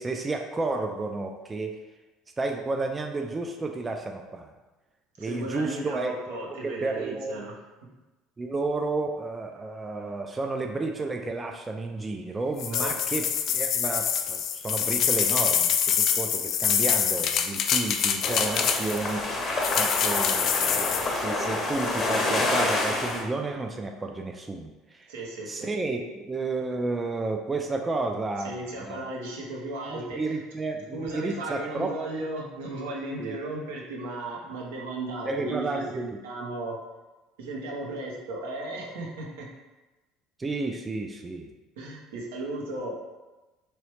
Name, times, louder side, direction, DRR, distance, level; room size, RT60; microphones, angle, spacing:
voice 1, 0.0-1.8 2.4-4.5 5.2-6.4 6.6-7.4 8.4-13.3 13.5-25.1 25.5-29.1 29.9-31.9 33.2-33.4 35.3-36.2 40.4-41.5, right 3 dB, 25° right, 3 dB, 0.3 m, -32 dB
voice 2, 5.2-7.5 12.7-12.9 25.1-25.7 28.4-30.4 30.9-36.8 37.4-39.5 41.8-42.9, right 2 dB, 80° right, -2 dB, 0.7 m, -35 dB
sound 1, 12.6-19.1 19.6-21.1, left 8 dB, 55° left, 0.3 m, -25 dB
sound 2, 18.2-23.2, left 2 dB, 40° left, 0.7 m, -28 dB
3.0 x 3.0 x 3.1 m, 1.1 s
hypercardioid pair, 75°, 0 cm